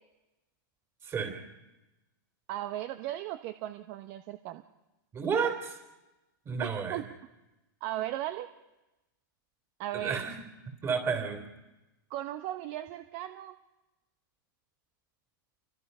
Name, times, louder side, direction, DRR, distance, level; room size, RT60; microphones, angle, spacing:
voice 1, 1.0-1.4 5.1-5.8 6.5-7.0 9.9-10.4 10.8-11.4, right 6 dB, 20° right, 6 dB, 3.7 m, -31 dB
voice 2, 2.5-4.6 6.6-7.0 7.8-8.5 9.8-10.3 12.1-13.5, right 13 dB, 45° right, 9 dB, 1.0 m, -36 dB
29.0 x 24.5 x 5.6 m, 1.0 s
supercardioid pair, 140°, 12 cm